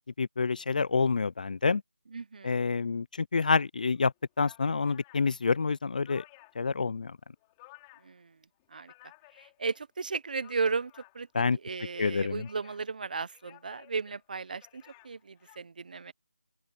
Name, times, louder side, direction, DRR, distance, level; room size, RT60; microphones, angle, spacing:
voice 1, 0.2-1.8 2.4-4.1 4.4-6.2 6.6-7.2 11.3-11.6 12.0-12.5, left 4 dB, 45° left, 0.4 m, -27 dB
voice 2, 2.1-2.6 8.0-8.4 8.7-8.9 9.3-16.1, right 4 dB, 45° right, 1.1 m, -35 dB
sound 1, 3.9-4.0 4.4-6.7 7.1-8.2 8.5-9.8 10.2-11.4 12.1-12.9 13.3-15.6, left 24 dB, 15° left, 6.2 m, -57 dB
open air
figure-of-eight pair, 165°, 6 cm